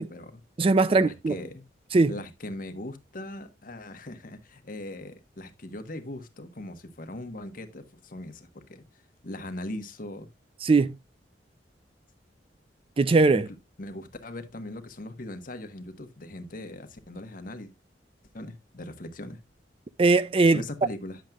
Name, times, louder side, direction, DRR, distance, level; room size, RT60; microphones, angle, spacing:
voice 1, 0.0-0.4 0.9-1.6 2.1-8.8 9.2-10.3 13.3-13.4 13.8-17.7 18.3-19.4 20.5-21.2, left 1 dB, 50° left, 1.3 m, -39 dB
voice 2, 0.6-1.4 1.9-2.1 10.6-11.0 13.0-13.5 20.0-20.6, right 3 dB, 30° right, 0.4 m, -20 dB
10.5 x 7.4 x 2.4 m
head